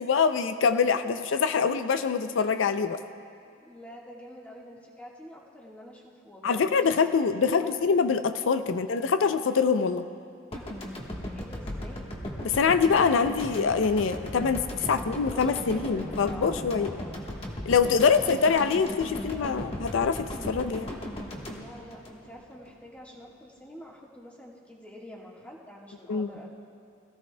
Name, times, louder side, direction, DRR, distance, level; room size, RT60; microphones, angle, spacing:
voice 1, 0.0-3.0 6.4-10.1 12.4-16.9 17.7-20.9 26.1-26.3, left 5 dB, 85° left, 10 dB, 0.4 m, -24 dB
voice 2, 1.0-1.3 3.6-6.8 7.4-7.7 8.7-8.8 11.3-12.2 14.8-17.4 18.1-19.6 21.4-26.5, equal, 10° left, -3 dB, 1.5 m, -47 dB
sound 1, 10.5-22.7, left 1 dB, 30° left, 1.2 m, -37 dB
21.0 x 15.0 x 2.2 m, 2.3 s
head